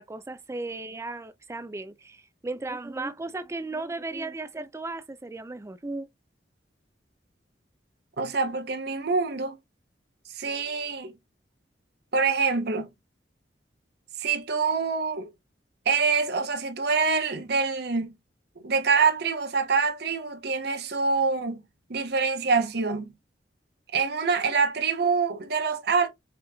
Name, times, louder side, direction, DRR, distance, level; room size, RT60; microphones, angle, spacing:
voice 1, 0.0-6.1, right 2 dB, 15° right, 0.4 m, -35 dB
voice 2, 8.2-9.6 10.3-11.1 12.1-12.9 14.2-15.3 15.9-18.1 18.6-21.6 21.9-23.1 23.9-26.1, right 4 dB, 65° right, 0.8 m, -25 dB
5.0 x 3.0 x 2.3 m
head